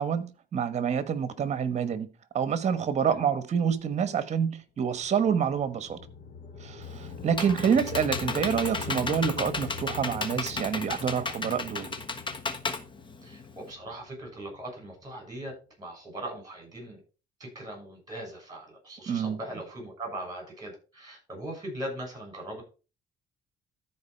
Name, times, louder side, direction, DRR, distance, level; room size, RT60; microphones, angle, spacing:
voice 1, 0.0-2.1 2.3-6.0 6.6-11.9 19.1-19.4, right 7 dB, 40° right, 1.3 m, -27 dB
sound 1, 4.9-15.1, left 5 dB, 50° left, 1.5 m, -42 dB
Computer keyboard, 6.8-13.7, left 4 dB, 30° left, 1.3 m, -34 dB
voice 2, 7.4-7.7 13.2-17.0 17.4-22.6, right 1 dB, 20° right, 6.6 m, -40 dB
13.5 x 4.7 x 4.4 m
cardioid pair, 110°, 17 cm